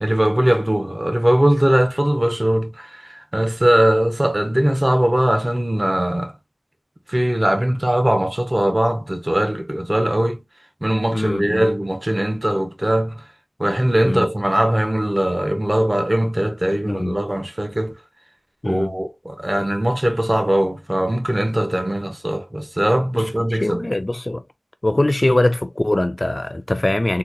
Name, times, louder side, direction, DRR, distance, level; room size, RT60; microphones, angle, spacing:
voice 1, 0.0-6.3 7.1-10.4 10.8-13.2 13.6-18.0 18.6-23.9, right 1 dB, 30° right, 0.9 m, -20 dB
voice 2, 11.1-11.6 14.0-14.3 16.9-17.2 18.6-18.9 23.1-24.4 24.8-27.2, left 1 dB, 40° left, 0.4 m, -22 dB
4.0 x 2.9 x 2.2 m
wide cardioid pair, 45°, 0 cm